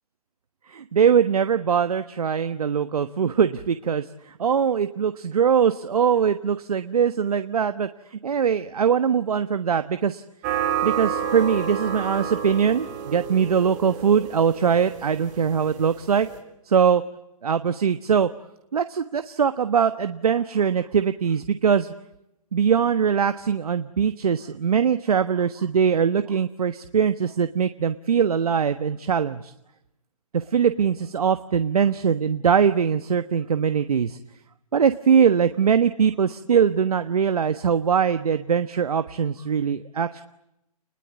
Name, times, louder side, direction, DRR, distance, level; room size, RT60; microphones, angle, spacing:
voice 1, 0.7-10.2 10.8-16.3 16.7-17.0 17.4-18.3 18.7-21.9 22.5-29.5 30.3-34.2 34.7-40.2, right 7 dB, 70° right, 10 dB, 1.3 m, -22 dB
sound 1, 10.4-16.4, right 8 dB, 30° right, 4.0 m, -30 dB
30.0 x 21.0 x 9.5 m, 0.88 s
hypercardioid pair, 155°, 20 cm